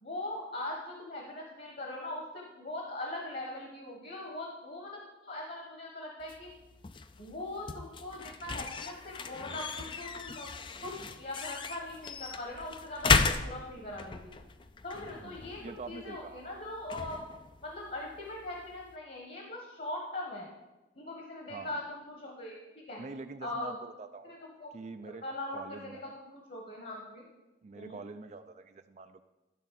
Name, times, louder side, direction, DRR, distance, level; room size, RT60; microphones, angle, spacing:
voice 1, 0.0-6.5 7.2-10.5 10.8-14.3 14.8-15.6 15.9-17.2 17.6-20.5 20.9-23.0 23.4-23.7 24.2-24.7 25.0-27.3 27.7-28.0, left 1 dB, 50° left, 0 dB, 1.4 m, -41 dB
sound 1, 6.2-19.0, left 4 dB, 25° left, 0.4 m, -35 dB
voice 2, 15.0-16.5 21.5-21.8 23.0-24.4 24.7-25.2 25.5-26.2 27.6-29.2, right 3 dB, 40° right, 9 dB, 0.4 m, -45 dB
11.5 x 4.1 x 7.5 m, 1.0 s
head